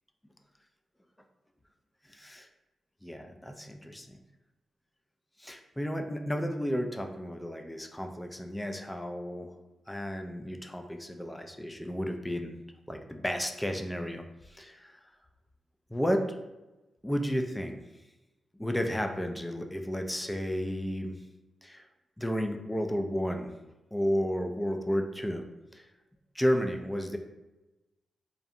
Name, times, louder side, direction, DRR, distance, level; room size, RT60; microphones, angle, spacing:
voice 1, 2.1-2.5 3.0-4.2 5.4-9.5 9.9-12.5 12.9-14.9 15.9-16.2 17.0-17.8 18.6-21.2 21.6-21.9 22.2-23.5 23.9-25.4 25.7-25.9 26.3-27.2, equal, 10° left, 5 dB, 0.3 m, -32 dB
2.6 x 2.0 x 2.5 m, 1.0 s
cardioid pair, 55°, 0 cm